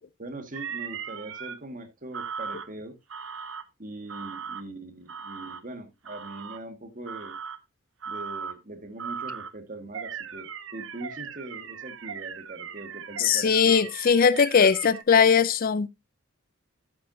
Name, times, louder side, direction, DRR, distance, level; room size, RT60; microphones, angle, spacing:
voice 1, 0.2-3.0 3.8-7.4 8.1-13.8, right 2 dB, 40° right, 1.8 m, -41 dB
sound 1, 0.5-1.5 2.1-2.7 3.1-3.6 4.1-4.6 5.1-5.6 6.0-6.6 7.1-7.6 8.0-8.6 9.0-9.5 9.9-15.0, right 7 dB, 65° right, 0.9 m, -38 dB
voice 2, 13.2-15.9, left 6 dB, 45° left, 0.4 m, -20 dB
12.0 x 7.8 x 2.7 m
head